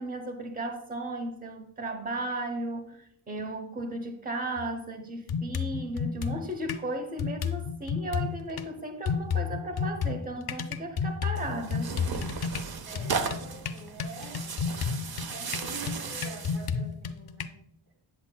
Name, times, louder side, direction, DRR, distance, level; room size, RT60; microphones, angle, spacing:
voice 1, 0.0-12.0, right 1 dB, 20° right, 6 dB, 0.8 m, -35 dB
sound 1, 4.6-4.7 5.3-6.9 7.2-8.7 9.1-17.5, left 6 dB, 50° left, 0.5 m, -32 dB
Tearing, 11.3-16.7, right 5 dB, 50° right, 0.6 m, -36 dB
voice 2, 12.9-14.5 15.3-17.6, right 2 dB, 75° right, -1 dB, 2.6 m, -45 dB
8.0 x 7.3 x 2.2 m, 0.72 s
wide cardioid pair, 110°, 48 cm